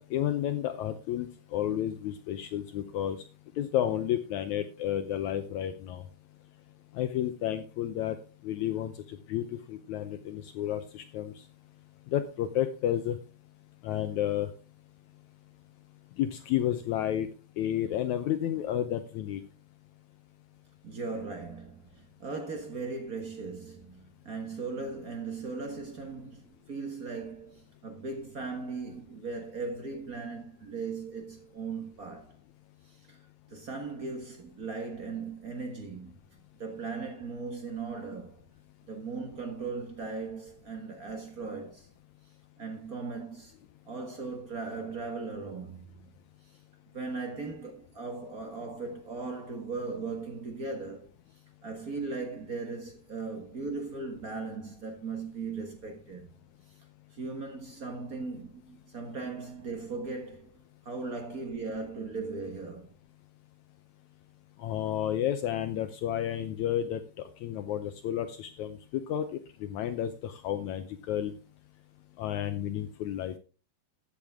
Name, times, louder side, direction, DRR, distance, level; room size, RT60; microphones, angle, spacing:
voice 1, 0.0-3.2 3.6-6.0 6.9-8.2 8.4-11.4 12.1-13.2 13.8-14.5 16.2-17.3 17.6-19.4 64.6-71.3 72.2-73.4, left 11 dB, 80° left, 1.7 m, -31 dB
voice 2, 20.8-32.3 32.8-33.2 33.5-36.1 36.6-38.4 38.9-41.9 42.6-43.5 43.8-46.1 46.9-51.1 51.6-56.3 57.1-60.6 60.8-62.9, right 4 dB, 75° right, 0.8 m, -38 dB
13.0 x 8.8 x 3.6 m
omnidirectional pair, 4.2 m